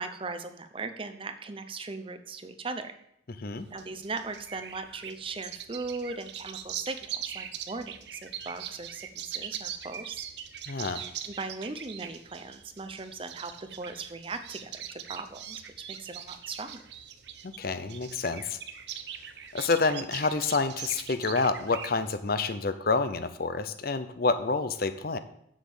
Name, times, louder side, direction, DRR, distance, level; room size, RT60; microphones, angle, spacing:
voice 1, 0.0-3.0 3.7-10.3 10.8-13.5 13.8-15.6 15.9-16.8, right 3 dB, 30° right, 9 dB, 0.6 m, -38 dB
sound 1, 3.6-22.1, right 9 dB, 60° right, 0.8 m, -41 dB
voice 2, 10.7-11.0 17.4-18.6 19.5-25.2, left 4 dB, 50° left, 11 dB, 0.7 m, -28 dB
7.5 x 7.3 x 7.2 m, 0.74 s
head